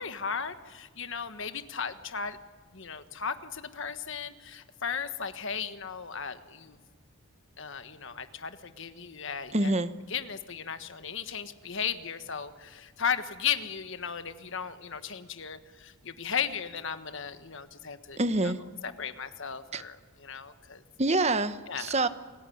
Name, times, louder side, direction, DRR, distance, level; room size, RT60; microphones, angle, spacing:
voice 1, 0.0-2.4 2.7-6.8 7.6-9.7 10.1-18.5 18.8-20.8 21.7-21.9, left 7 dB, 55° left, 10 dB, 1.4 m, -36 dB
voice 2, 9.5-9.9 18.2-18.6 19.7-19.8 21.0-22.1, right 2 dB, 30° right, 12 dB, 1.0 m, -26 dB
29.0 x 18.0 x 9.4 m, 1.5 s
head